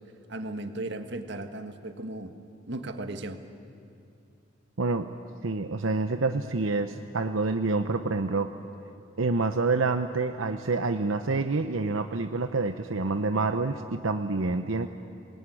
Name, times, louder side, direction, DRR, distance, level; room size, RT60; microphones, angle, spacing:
voice 1, 0.3-2.3 2.7-3.4, right 2 dB, 60° right, 7 dB, 1.6 m, -36 dB
voice 2, 4.8-5.1 5.4-8.5 9.2-14.9, right 3 dB, 85° right, 8 dB, 0.9 m, -27 dB
26.0 x 19.5 x 9.9 m, 2.6 s
head